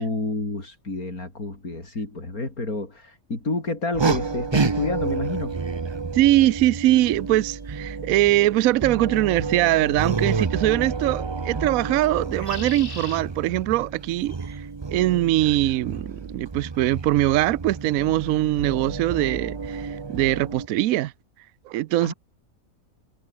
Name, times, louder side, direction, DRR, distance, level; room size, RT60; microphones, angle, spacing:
voice 1, 0.0-5.5 22.0-22.1, left 2 dB, 80° left, 5.6 m, -29 dB
sound 1, 3.9-20.7, right 4 dB, 30° right, 0.5 m, -30 dB
voice 2, 6.1-14.7 14.9-21.1 21.7-22.1, right 15 dB, 75° right, 1.0 m, -22 dB
sound 2, 7.5-7.6 10.1-10.4 12.2-13.2 14.1-14.6, left 3 dB, 35° left, 3.0 m, -40 dB
omnidirectional pair, 1.5 m